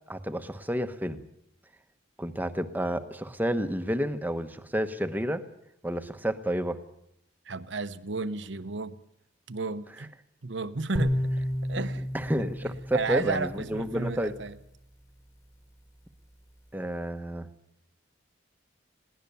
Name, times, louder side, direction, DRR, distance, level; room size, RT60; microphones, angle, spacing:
voice 1, 0.1-1.2 2.2-5.5 5.8-6.8 12.1-14.3 16.7-17.5, equal, 10° right, 9 dB, 1.1 m, -30 dB
voice 2, 7.4-9.0 9.5-10.1 10.4-11.3 11.6-12.1 12.4-14.6, right 3 dB, 70° right, 12 dB, 1.0 m, -33 dB
sound 1, 11.0-14.2, equal, 15° left, 2.0 m, -32 dB
21.5 x 17.5 x 7.0 m, 0.78 s
head